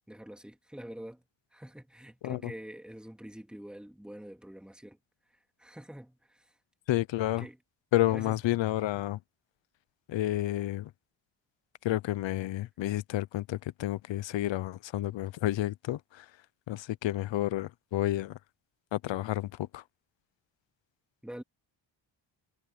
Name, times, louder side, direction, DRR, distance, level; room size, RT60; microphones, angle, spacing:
voice 1, 0.1-1.2 1.5-5.0 5.6-6.4 7.4-7.6 8.1-8.4 21.2-21.4, right 1 dB, ahead, 2.5 m, -45 dB
voice 2, 6.9-7.5 7.9-9.2 10.1-10.9 11.8-16.3 16.7-18.4 18.9-19.8, left 15 dB, 70° left, 0.8 m, -30 dB
cardioid pair, 115°, 46 cm